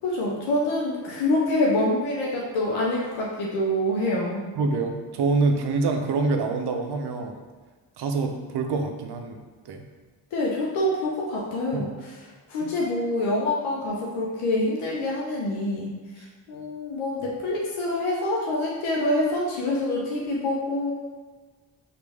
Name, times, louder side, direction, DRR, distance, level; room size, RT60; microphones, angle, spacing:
voice 1, 0.0-4.4 10.3-12.1 12.5-15.9 16.1-20.9, left 1 dB, 85° left, -4 dB, 0.7 m, -26 dB
voice 2, 4.6-7.4 8.0-9.4 9.7-9.9 11.7-11.9 12.6-12.7, right 3 dB, 55° right, 4 dB, 0.6 m, -26 dB
3.1 x 2.5 x 3.4 m, 1.4 s
supercardioid pair, 45°, 47 cm